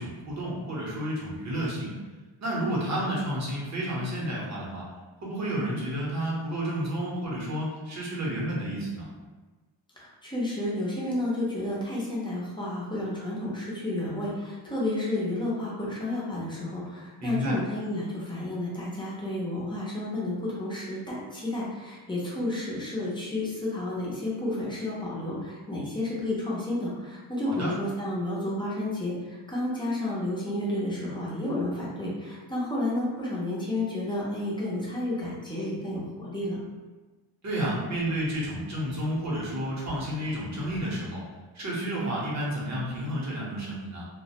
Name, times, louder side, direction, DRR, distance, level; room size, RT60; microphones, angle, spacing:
voice 1, 0.0-1.9 2.4-4.8 5.2-9.1 17.2-17.6 27.5-27.7 37.4-41.2 41.5-44.1, right 1 dB, 35° right, -5 dB, 0.7 m, -31 dB
voice 2, 10.0-36.6, left 1 dB, 10° left, -7 dB, 0.4 m, -31 dB
2.4 x 2.0 x 2.8 m, 1.3 s
wide cardioid pair, 160°, 50 cm